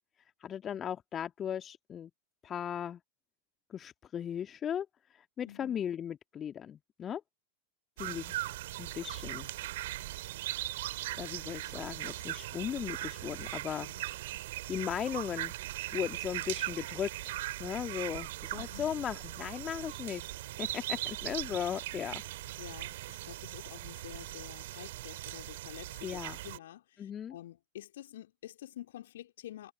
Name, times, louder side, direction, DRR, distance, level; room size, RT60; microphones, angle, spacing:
voice 1, 0.4-2.1 2.4-3.0 3.7-4.9 5.1-7.2 8.0-8.3 8.8-9.5 11.2-13.9 14.7-15.5 15.9-17.3 17.6-20.3 20.6-22.2 26.0-26.4 27.0-27.4, left 9 dB, 25° left, 1.8 m, -37 dB
voice 2, 5.4-5.8 13.7-14.0 18.5-18.9 22.6-29.7, left 13 dB, 60° left, 3.5 m, -49 dB
sound 1, 8.0-26.6, right 16 dB, 55° right, 3.8 m, -39 dB
figure-of-eight pair, 90°, 0 cm